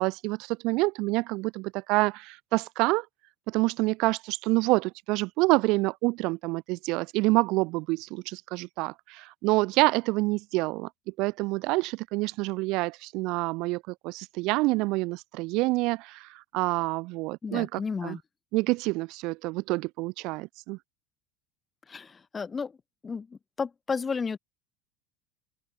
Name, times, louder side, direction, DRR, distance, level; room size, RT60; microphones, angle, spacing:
voice 1, 0.0-3.1 3.5-10.9 11.2-18.2 18.5-20.8, right 23 dB, 65° right, 0.6 m, -27 dB
voice 2, 17.4-18.2 21.9-22.8 23.0-24.4, left 5 dB, 20° left, 2.1 m, -33 dB
open air
supercardioid pair, 115°, 0 cm